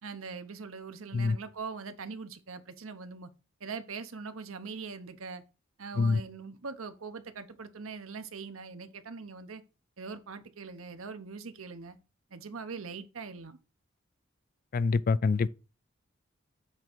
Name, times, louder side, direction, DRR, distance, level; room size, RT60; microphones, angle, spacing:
voice 1, 0.0-3.3 3.6-5.4 5.8-9.6 10.0-12.0 12.3-13.6, right 5 dB, 80° right, 0.8 m, -42 dB
voice 2, 14.7-15.5, left 4 dB, 45° left, 0.3 m, -25 dB
7.6 x 3.6 x 5.9 m
head